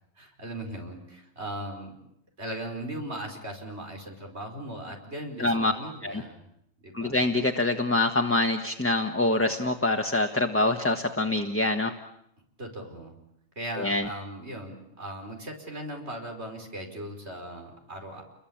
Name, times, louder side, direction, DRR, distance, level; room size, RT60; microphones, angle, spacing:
voice 1, 0.2-1.9 2.4-6.5 6.8-7.2 12.6-13.2 13.6-18.2, right 1 dB, 70° right, 3 dB, 5.3 m, -38 dB
voice 2, 5.4-5.7 6.0-6.2 6.9-11.9 13.8-14.1, left 2 dB, 10° left, 4 dB, 1.3 m, -25 dB
29.0 x 22.5 x 8.8 m, 0.76 s
omnidirectional pair, 1.2 m